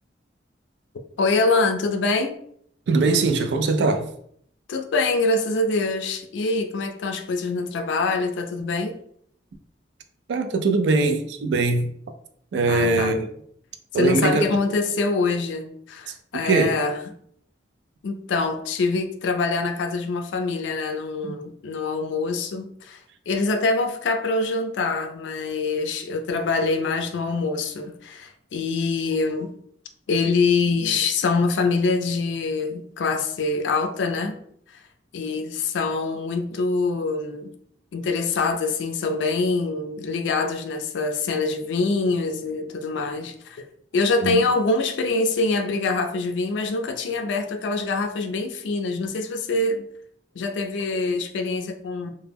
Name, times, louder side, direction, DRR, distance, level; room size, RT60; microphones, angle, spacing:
voice 1, 1.2-2.3 4.7-9.0 12.7-13.2 13.9-17.0 18.0-23.0 23.3-29.5 30.1-34.4 34.7-34.8 35.1-37.5 37.9-43.6 43.9-49.9 50.4-52.1, left 3 dB, 85° left, 0.4 m, -24 dB
voice 2, 2.9-4.1 10.3-11.9 12.5-13.3 13.9-14.4 16.4-16.8 21.3-21.4 44.2-44.4, right 3 dB, 70° right, 0.3 m, -21 dB
2.1 x 2.1 x 3.3 m
head